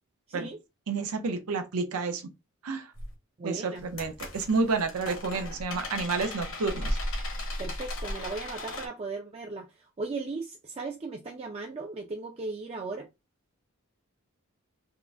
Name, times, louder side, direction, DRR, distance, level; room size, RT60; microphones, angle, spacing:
voice 1, 0.3-0.6 3.4-3.8 7.6-13.1, right 3 dB, 30° right, 0.3 m, -37 dB
voice 2, 0.9-2.2 2.6-2.9 3.4-7.0, right 4 dB, 90° right, 0.6 m, -30 dB
sound 1, 3.0-3.1 3.8-8.9, left 1 dB, 70° left, 1.2 m, -35 dB
3.6 x 2.0 x 3.4 m
head